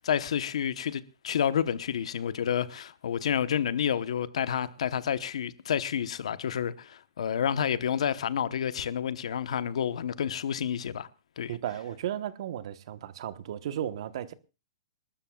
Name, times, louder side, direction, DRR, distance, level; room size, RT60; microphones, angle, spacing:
voice 1, 0.0-11.1 11.4-11.6, left 8 dB, 75° left, 1.0 m, -29 dB
voice 2, 11.5-14.3, right 11 dB, 55° right, 1.1 m, -34 dB
27.5 x 13.0 x 2.4 m
hypercardioid pair, 160°, 3 cm